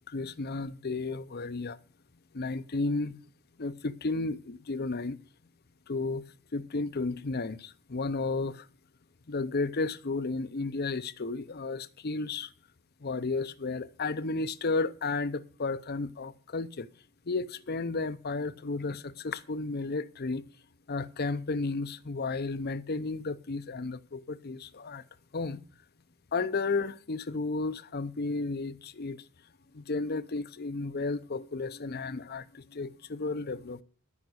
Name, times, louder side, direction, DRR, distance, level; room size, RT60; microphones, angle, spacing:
voice 1, 0.1-1.8 2.3-3.1 3.6-5.2 5.9-6.2 6.5-8.7 9.3-12.5 13.0-16.9 17.3-20.4 20.9-25.0 25.3-25.6 26.3-29.2 29.7-33.8, left 3 dB, 50° left, 0.7 m, -33 dB
13.5 x 6.0 x 7.9 m
head